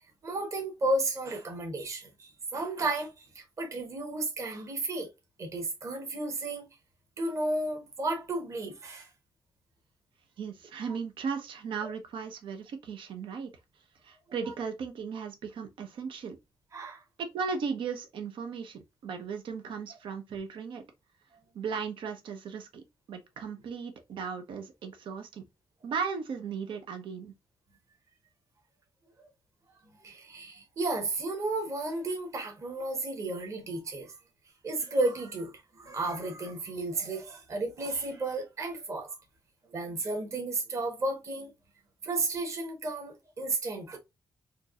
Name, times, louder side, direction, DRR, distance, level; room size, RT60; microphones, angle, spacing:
voice 1, 0.2-5.1 5.4-6.7 7.2-9.1 11.8-11.9 16.7-17.0 30.0-34.1 34.6-39.1 39.7-41.5 42.0-44.0, right 2 dB, 35° right, 1.2 m, -33 dB
voice 2, 10.4-13.5 14.0-16.4 17.2-20.8 21.5-25.4 25.8-27.3, right 5 dB, 85° right, 0.9 m, -36 dB
4.4 x 2.7 x 2.4 m
wide cardioid pair, 175°, 9 cm